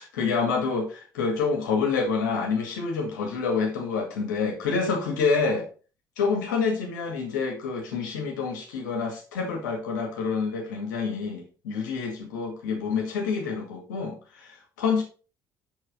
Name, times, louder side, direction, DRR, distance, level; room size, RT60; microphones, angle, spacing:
voice 1, 0.0-5.7 6.2-15.0, left 5 dB, 75° left, 2 dB, 2.0 m, -27 dB
6.5 x 5.9 x 4.1 m, 0.36 s
figure-of-eight pair, 50°, 10 cm